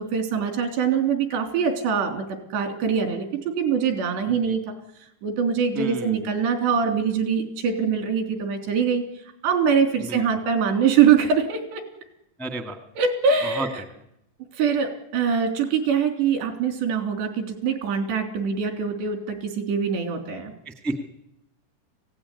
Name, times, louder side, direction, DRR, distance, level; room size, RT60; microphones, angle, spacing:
voice 1, 0.0-2.3 2.5-4.7 5.2-9.0 9.4-11.8 13.0-13.7 14.6-20.5, right 6 dB, 90° right, 5 dB, 5.5 m, -23 dB
voice 2, 4.3-4.6 5.7-6.2 10.0-10.2 12.4-12.8 13.4-13.7 20.6-21.0, right 2 dB, ahead, 6 dB, 0.4 m, -31 dB
24.0 x 17.0 x 9.8 m, 0.81 s
omnidirectional pair, 4.8 m